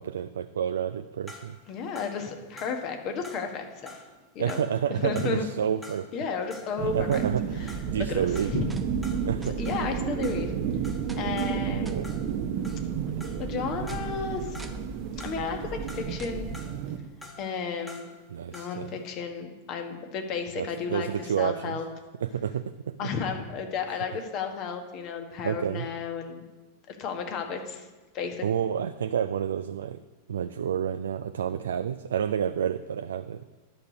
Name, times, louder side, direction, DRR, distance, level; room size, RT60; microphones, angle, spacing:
voice 1, 0.0-1.6 4.4-6.1 6.9-8.6 9.2-9.6 11.9-12.1 18.3-18.9 20.6-21.8 22.2-23.1 25.4-25.9 28.4-30.0 30.3-33.4, right 8 dB, 65° right, 10 dB, 0.3 m, -29 dB
sound 1, 1.3-6.2 6.5-13.6 13.9-15.6 15.9-18.9, left 1 dB, 5° left, 1.6 m, -49 dB
voice 2, 1.7-3.9 4.3-4.6 5.0-5.5 6.1-7.2 7.6-7.7 8.1-8.6 9.4-10.5 11.2-12.0 13.4-14.6 15.2-16.5 17.4-18.1 18.5-21.8 23.0-26.4 26.9-27.9 28.1-28.4, left 5 dB, 40° left, 4 dB, 1.4 m, -33 dB
sound 2, 6.8-17.0, right 8 dB, 45° right, 0.7 m, -32 dB
sound 3, 7.7-16.6, right 1 dB, 10° right, 0.8 m, -41 dB
10.5 x 6.4 x 5.2 m, 1.2 s
figure-of-eight pair, 90°, 0 cm